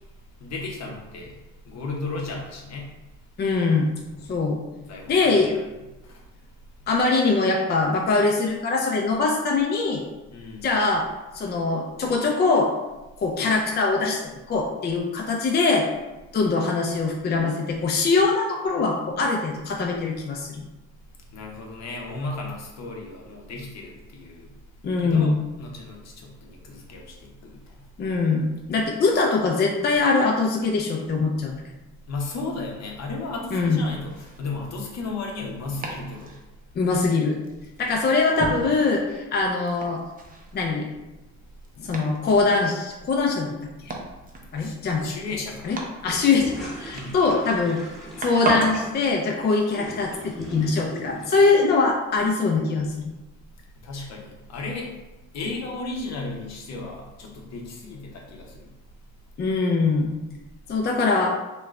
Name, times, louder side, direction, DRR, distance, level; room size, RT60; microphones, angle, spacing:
voice 1, 0.4-2.9 4.2-4.3 4.9-5.6 6.0-6.2 10.3-10.7 21.3-24.5 25.0-27.9 32.1-36.4 44.6-44.8 45.0-45.7 46.9-47.2 53.7-54.9 55.3-58.7, left 3 dB, 60° left, 0 dB, 0.8 m, -35 dB
voice 2, 3.4-3.9 4.3-4.6 5.1-5.5 6.9-10.0 10.6-11.0 11.3-12.7 13.2-14.2 14.5-15.9 16.3-20.6 24.8-25.4 28.0-31.6 33.5-33.8 36.8-37.4 37.8-40.0 40.5-40.9 41.8-43.5 43.8-44.0 44.5-45.0 45.6-45.8 46.0-47.8 48.2-52.9 59.4-60.2 60.7-61.3, left 3 dB, 35° left, 0 dB, 0.4 m, -22 dB
Domestic sounds home sounds, 33.4-48.9, right 2 dB, 30° right, 0.6 m, -36 dB
sound 1, 46.0-51.7, equal, ahead, 1.1 m, -40 dB
3.0 x 2.4 x 3.2 m, 1.0 s
cardioid pair, 90°, 30 cm